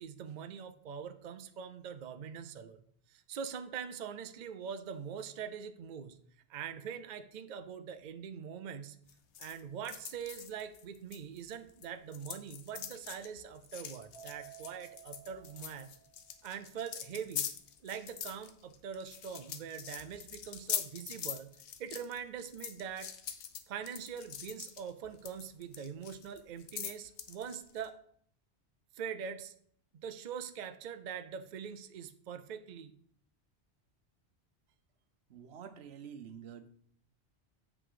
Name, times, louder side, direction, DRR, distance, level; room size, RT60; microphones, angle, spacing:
voice 1, 0.0-6.2 6.5-9.0 9.4-15.9 16.4-17.5 17.8-21.5 21.8-23.1 23.7-28.0 28.9-29.5 29.9-32.9, right 7 dB, 50° right, 9 dB, 0.6 m, -43 dB
sound 1, 9.1-11.9 12.1-27.9, left 8 dB, 90° left, 1.0 m, -43 dB
Keyboard (musical), 14.1-16.6, right 13 dB, 55° left, 2.6 m, -55 dB
voice 2, 35.3-36.7, right 8 dB, 75° right, 11 dB, 0.9 m, -48 dB
7.8 x 4.9 x 4.9 m, 0.63 s
omnidirectional pair, 1.1 m